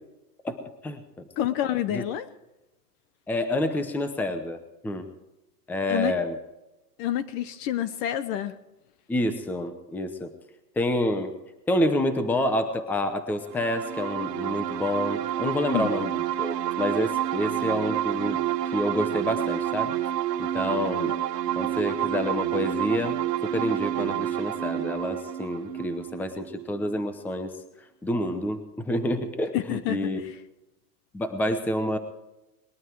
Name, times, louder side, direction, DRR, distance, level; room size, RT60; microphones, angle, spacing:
voice 1, 0.4-1.2 1.9-2.0 3.3-5.1 5.7-6.4 9.1-10.3 10.8-11.3 11.7-16.1 16.4-18.4 18.7-19.9 20.4-21.1 21.6-27.5 28.0-30.2 31.1-32.0, left 1 dB, 5° left, 9 dB, 0.8 m, -28 dB
voice 2, 1.4-2.3 5.9-6.1 7.0-8.6 15.7-16.0 21.0-21.1 29.5-30.3, left 11 dB, 35° left, 14 dB, 0.9 m, -28 dB
sound 1, 13.5-27.0, right 12 dB, 85° right, 1.4 m, -29 dB
20.5 x 12.5 x 4.7 m, 0.98 s
supercardioid pair, 145°, 47 cm